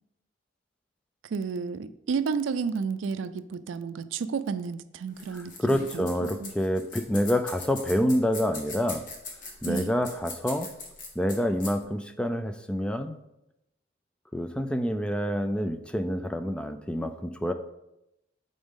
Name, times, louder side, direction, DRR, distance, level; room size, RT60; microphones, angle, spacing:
voice 1, 1.2-6.5 9.6-9.9, right 5 dB, 75° right, 13 dB, 0.4 m, -32 dB
sound 1, 5.1-11.8, left 3 dB, 45° left, 1.2 m, -40 dB
voice 2, 5.3-9.0 9.6-10.7 11.2-13.2 14.3-17.5, equal, 5° left, 8 dB, 0.3 m, -27 dB
8.6 x 4.0 x 3.6 m, 0.88 s
head